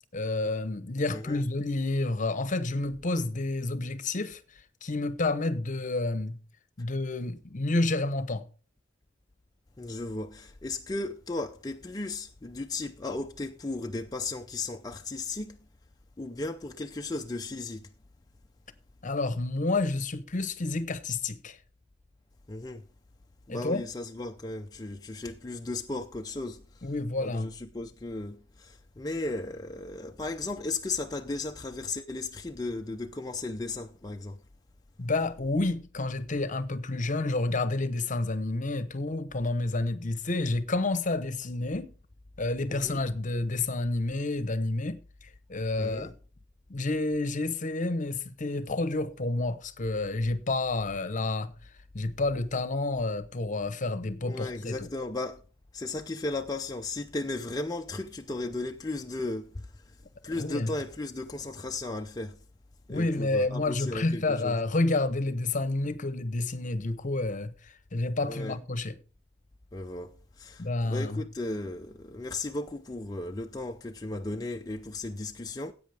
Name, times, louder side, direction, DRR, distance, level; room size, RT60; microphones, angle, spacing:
voice 1, 0.1-4.4 4.8-6.4 6.8-8.4 19.0-21.6 23.5-23.8 26.8-27.5 35.0-41.9 42.4-46.1 46.7-51.5 51.9-54.9 60.4-60.7 62.9-69.0 70.6-71.2, left 2 dB, 45° left, 0.9 m, -29 dB
voice 2, 1.1-1.4 9.8-15.6 16.2-17.9 22.5-22.8 23.5-26.9 27.2-34.4 42.7-43.0 45.8-46.1 54.2-55.4 55.7-60.0 60.2-62.4 62.9-64.6 68.3-68.6 69.7-75.7, left 2 dB, 20° left, 0.6 m, -35 dB
16.0 x 8.5 x 3.4 m
head